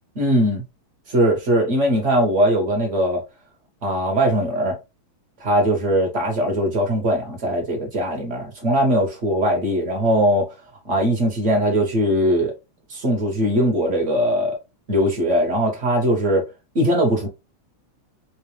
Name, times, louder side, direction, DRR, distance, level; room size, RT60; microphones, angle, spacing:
voice 1, 0.1-0.6 1.1-3.2 3.8-4.8 5.4-10.5 10.8-12.5 12.9-14.6 14.9-16.4 16.7-17.3, equal, 40° right, 1.2 m, -20 dB
3.7 x 2.4 x 3.2 m
omnidirectional pair, 2.4 m